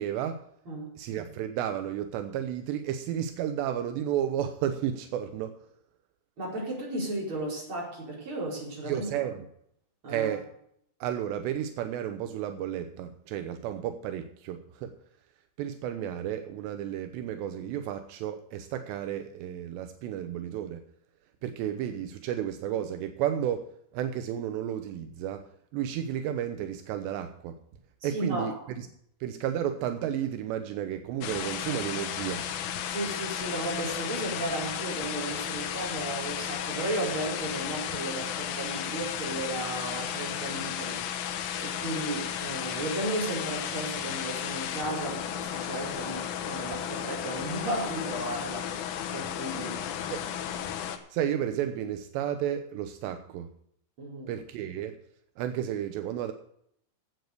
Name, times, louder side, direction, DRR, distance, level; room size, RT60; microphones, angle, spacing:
voice 1, 0.0-0.5 1.0-5.6 8.9-9.5 10.1-10.5 11.0-14.9 15.6-20.8 21.4-27.6 28.0-28.9 29.2-32.5 50.1-50.2 51.1-53.5 54.3-55.0 55.4-56.3, right 10 dB, 85° right, 8 dB, 2.5 m, -32 dB
voice 2, 6.4-9.3 10.0-10.4 28.0-28.5 32.8-48.8 49.1-49.8 54.0-54.3, right 2 dB, 25° right, -3 dB, 5.0 m, -34 dB
sound 1, 31.2-51.0, left 9 dB, 75° left, 3.6 m, -34 dB
12.0 x 8.0 x 6.7 m, 0.70 s
omnidirectional pair, 5.9 m